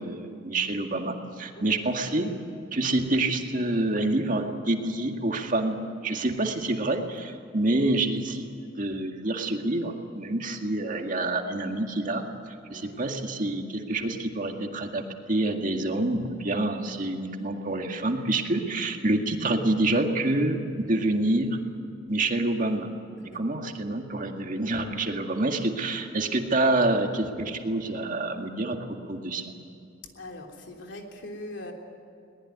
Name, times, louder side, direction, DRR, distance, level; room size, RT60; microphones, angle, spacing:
voice 1, 0.0-2.3 2.7-8.5 8.8-12.2 12.7-15.0 15.3-21.6 22.1-22.9 23.3-28.8 29.1-29.5, right 2 dB, 45° right, 3 dB, 2.0 m, -27 dB
voice 2, 1.5-2.0 12.7-13.1 23.2-23.6 30.0-31.7, left 1 dB, 75° left, 2 dB, 3.4 m, -42 dB
22.5 x 19.5 x 9.5 m, 2.6 s
head